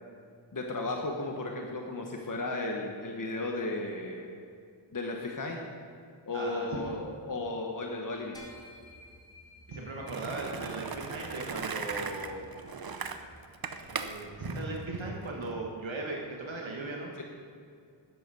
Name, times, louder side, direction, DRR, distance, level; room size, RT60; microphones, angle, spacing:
voice 1, 0.5-4.3 4.9-5.6 6.3-8.4 17.2-17.3, left 2 dB, 45° left, 1 dB, 1.2 m, -34 dB
voice 2, 6.3-7.0 9.7-12.4 13.8-17.1, right 2 dB, 80° right, -1 dB, 1.4 m, -38 dB
sound 1, 8.3-14.0, left 1 dB, 10° left, 2.2 m, -54 dB
Skateboard, 10.1-15.5, right 5 dB, 50° right, 0.7 m, -38 dB
11.0 x 7.8 x 5.5 m, 2.3 s
wide cardioid pair, 65°, 46 cm